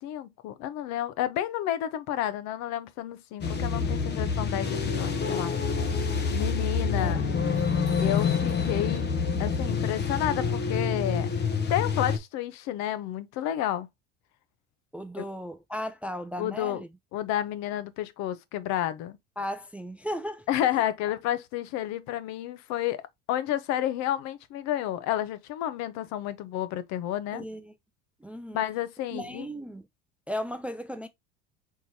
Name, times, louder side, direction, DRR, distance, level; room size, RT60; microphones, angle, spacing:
voice 1, 0.0-5.5 6.3-7.2 8.0-9.1 9.4-11.3 11.7-13.9 15.2-15.3 16.4-16.8 17.1-19.2 20.5-23.0 23.3-27.4 28.5-29.5, left 12 dB, 65° left, 0.8 m, -30 dB
sound 1, 3.4-12.2, left 5 dB, 35° left, 0.9 m, -27 dB
voice 2, 7.0-8.0 14.9-16.9 19.4-20.5 27.3-27.7 28.2-28.6 29.1-29.9 30.3-31.1, equal, 5° right, 0.3 m, -36 dB
4.6 x 3.7 x 2.7 m
supercardioid pair, 115°, 30 cm